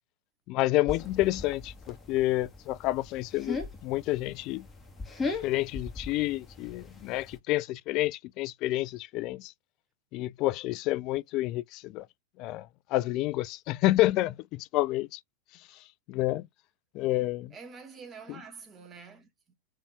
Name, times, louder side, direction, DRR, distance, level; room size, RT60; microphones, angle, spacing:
voice 1, 0.5-3.6 3.8-4.7 5.4-9.5 10.1-12.0 12.4-15.2 16.1-16.5 16.9-17.5, left 17 dB, 40° left, 0.3 m, -29 dB
sound 1, 0.9-7.4, left 4 dB, 15° left, 1.6 m, -39 dB
voice 2, 17.5-19.5, right 5 dB, 20° right, 1.8 m, -47 dB
4.7 x 3.3 x 3.3 m
figure-of-eight pair, 90°, 0 cm